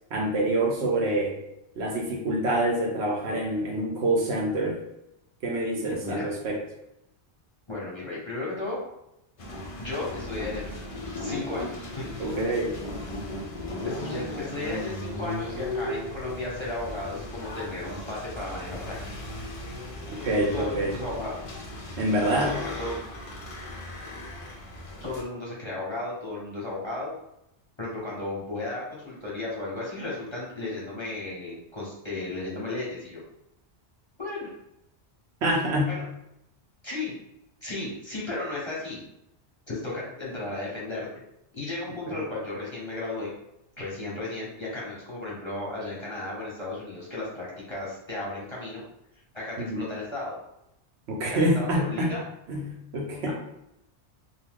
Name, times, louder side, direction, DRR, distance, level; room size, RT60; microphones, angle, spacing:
voice 1, 0.1-1.4 1.8-4.8 5.4-6.6 12.2-12.8 20.2-20.9 22.0-22.6 35.4-36.0 42.1-42.2 49.6-49.8 51.1-52.1 52.5-53.3, right 1 dB, 75° right, 0 dB, 0.9 m, -26 dB
voice 2, 7.7-8.8 9.8-10.7 11.2-12.3 13.8-19.2 20.5-21.3 22.4-23.0 25.0-27.2 27.8-33.2 34.2-34.5 35.8-36.0 36.8-37.1 37.6-39.0 39.7-41.1 41.5-43.3 43.8-48.8 49.3-50.4 51.2-52.2 53.3-53.4, left 2 dB, 25° left, -7 dB, 0.9 m, -34 dB
sound 1, 9.4-25.2, left 1 dB, 50° left, 0.4 m, -36 dB
2.7 x 2.3 x 3.5 m, 0.84 s
omnidirectional pair, 1.2 m